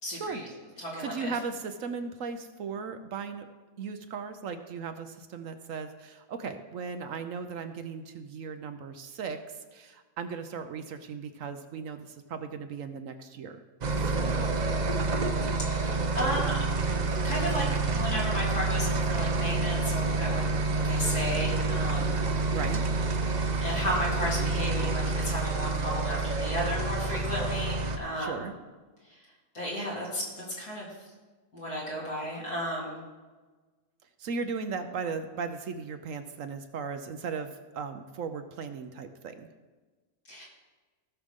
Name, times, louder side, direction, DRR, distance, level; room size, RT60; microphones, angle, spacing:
voice 1, 0.0-0.5 0.8-1.3 15.7-16.6 17.2-22.2 23.6-28.5 29.5-30.9 31.5-33.0 40.3-40.4, equal, 80° left, -5 dB, 3.8 m, -33 dB
voice 2, 1.0-3.4 3.8-9.4 9.7-14.6 22.5-22.8 28.2-28.5 34.2-39.5, right 5 dB, 65° right, 8 dB, 1.0 m, -37 dB
sound 1, 13.8-28.0, right 3 dB, 45° right, 0.6 m, -28 dB
17.0 x 6.4 x 3.6 m, 1.3 s
omnidirectional pair, 1.6 m